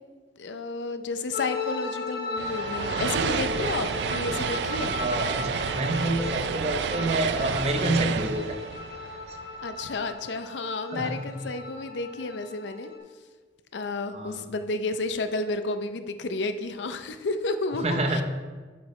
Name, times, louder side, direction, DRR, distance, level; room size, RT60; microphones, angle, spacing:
voice 1, 0.4-5.0 9.6-12.9 13.7-18.2, left 3 dB, 85° left, 9 dB, 0.6 m, -31 dB
sound 1, 1.3-13.0, left 3 dB, 60° left, 1.4 m, -36 dB
sound 2, 2.4-9.8, right 6 dB, 75° right, 0.4 m, -30 dB
voice 2, 5.0-8.5 9.3-9.4 10.9-11.2 14.1-14.4 17.8-18.2, right 1 dB, 35° right, 5 dB, 0.7 m, -28 dB
8.1 x 7.6 x 3.2 m, 1.4 s
head